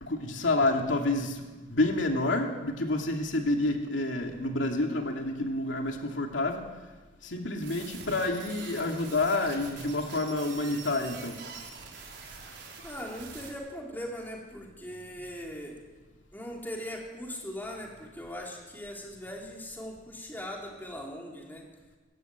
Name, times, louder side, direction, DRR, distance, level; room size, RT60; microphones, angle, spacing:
voice 1, 0.0-6.7 7.2-11.4, left 2 dB, 80° left, 2 dB, 2.6 m, -29 dB
sound 1, 7.6-13.5, right 5 dB, 65° right, 5.1 m, -45 dB
voice 2, 12.8-15.7 16.3-21.6, equal, 10° left, -1 dB, 3.9 m, -40 dB
24.0 x 13.0 x 9.4 m, 1.2 s
head